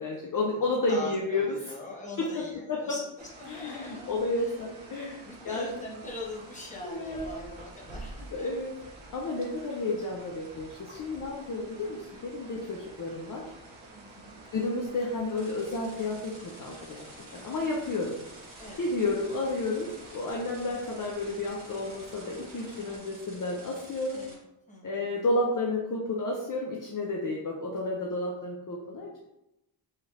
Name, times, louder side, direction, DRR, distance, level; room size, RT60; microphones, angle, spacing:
voice 1, 0.0-1.7 2.2-3.0 3.5-5.7 6.8-7.4 8.3-8.7 9.1-13.5 14.5-17.1 17.3-18.2 18.8-24.2 24.8-29.2, left 2 dB, 45° left, -1 dB, 0.5 m, -31 dB
voice 2, 0.9-4.5 5.1-8.3 13.9-14.4 18.6-18.9 24.1-24.4 24.7-25.1, left 2 dB, 15° left, -4 dB, 1.0 m, -42 dB
sound 1, 3.2-23.0, right 2 dB, 80° right, 0.8 m, -49 dB
sound 2, 15.4-24.3, right 1 dB, 45° right, 1.3 m, -51 dB
4.2 x 3.2 x 2.4 m, 0.92 s
wide cardioid pair, 120°, 46 cm